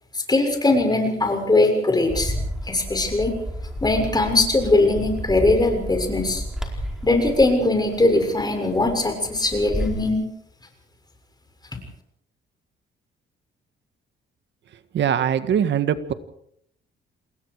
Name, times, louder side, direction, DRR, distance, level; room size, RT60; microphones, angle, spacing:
voice 1, 0.1-2.3 2.7-3.3 3.8-6.4 7.0-10.2, left 2 dB, 20° left, 5 dB, 6.8 m, -20 dB
Bird, 2.1-10.1, equal, 5° right, 4.8 m, -32 dB
voice 2, 14.9-16.1, right 9 dB, 65° right, 11 dB, 1.7 m, -21 dB
28.0 x 20.5 x 4.9 m, 0.71 s
cardioid pair, 90°, 20 cm